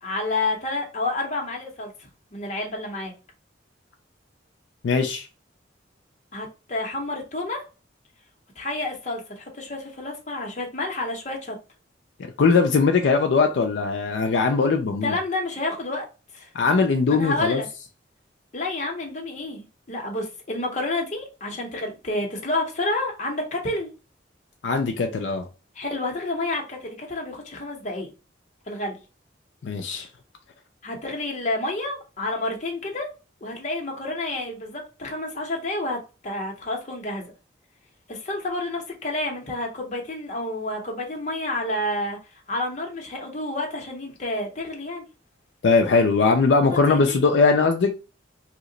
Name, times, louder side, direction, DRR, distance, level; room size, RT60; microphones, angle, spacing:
voice 1, 0.0-3.1 6.3-7.6 8.6-11.6 15.0-16.1 16.3-16.5 17.1-17.7 18.5-23.9 25.8-28.1 28.7-29.0 30.8-33.1 33.4-37.3 38.1-42.2 42.5-45.0 46.7-47.2, left 2 dB, 40° left, 0.7 m, -29 dB
voice 2, 4.8-5.3 12.4-15.2 16.5-17.6 24.6-25.5 29.6-30.1 45.6-47.9, left 4 dB, 75° left, 0.4 m, -20 dB
2.8 x 2.1 x 3.7 m
head